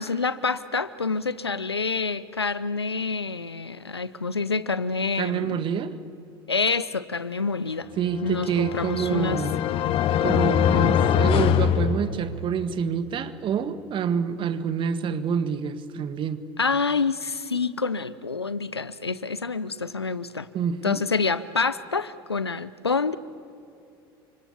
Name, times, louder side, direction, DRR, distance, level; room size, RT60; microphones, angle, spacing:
voice 1, 0.0-5.6 6.5-7.9 8.2-9.4 16.6-20.5 20.8-23.2, left 4 dB, 90° left, 17 dB, 0.7 m, -27 dB
voice 2, 5.2-5.9 8.0-9.5 10.2-16.4 20.5-21.1, right 7 dB, 40° right, 12 dB, 1.7 m, -27 dB
sound 1, 8.2-12.6, left 9 dB, 45° left, 1.3 m, -23 dB
30.0 x 26.0 x 7.2 m, 2.8 s
figure-of-eight pair, 70°, 13 cm